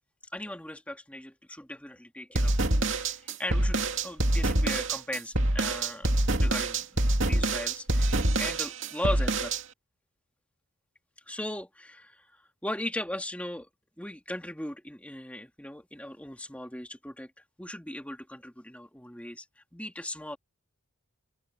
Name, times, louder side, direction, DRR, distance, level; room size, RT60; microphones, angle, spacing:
voice 1, 0.3-9.5 11.3-13.7 14.0-17.3 17.6-19.5 19.7-20.4, left 1 dB, 5° left, 2.4 m, -38 dB
sound 1, 2.3-9.6, right 2 dB, 60° right, 2.7 m, -26 dB
open air
head